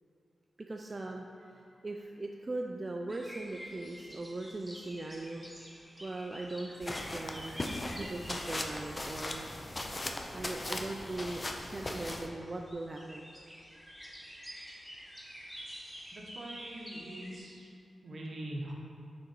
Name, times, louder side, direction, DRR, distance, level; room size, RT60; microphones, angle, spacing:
voice 1, 0.7-5.5 6.0-7.6 8.0-9.5 9.8-9.9 10.3-13.3, right 2 dB, 30° right, 1 dB, 0.3 m, -40 dB
sound 1, 3.1-17.4, equal, 5° right, 0.8 m, -49 dB
sound 2, 6.8-12.3, left 1 dB, 25° left, 0.5 m, -38 dB
voice 2, 16.1-17.7 18.0-18.7, right 1 dB, 60° right, -1 dB, 0.9 m, -42 dB
6.1 x 4.0 x 4.5 m, 2.5 s
wide cardioid pair, 90°, 0 cm